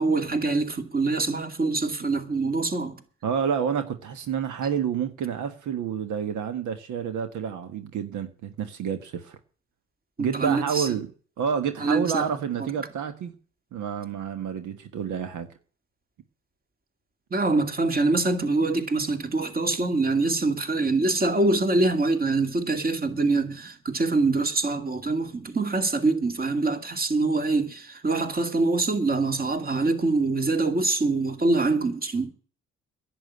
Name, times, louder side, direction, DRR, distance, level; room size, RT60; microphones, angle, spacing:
voice 1, 0.0-2.9 10.2-10.9 11.8-12.2 12.6-12.7 17.3-32.3, right 3 dB, 30° right, 2.4 m, -24 dB
voice 2, 3.2-9.4 10.2-11.1 11.4-13.3 13.7-15.5, right 7 dB, 75° right, 1.5 m, -29 dB
11.0 x 8.6 x 9.6 m
cardioid pair, 90°, 30 cm